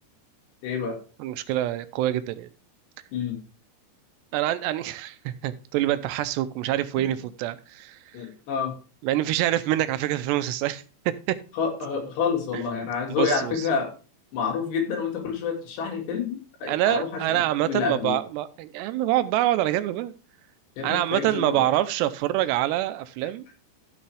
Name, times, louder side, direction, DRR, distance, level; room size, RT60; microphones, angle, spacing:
voice 1, 0.6-1.0 3.1-3.4 7.0-7.1 8.1-8.7 11.5-13.9 14.3-18.2 20.8-21.6, left 6 dB, 75° left, 1 dB, 4.3 m, -28 dB
voice 2, 1.2-2.5 4.3-8.0 9.0-11.4 13.2-13.5 16.7-20.1 20.8-23.4, right 14 dB, 85° right, 13 dB, 2.8 m, -26 dB
14.0 x 6.6 x 3.4 m, 0.36 s
omnidirectional pair, 4.9 m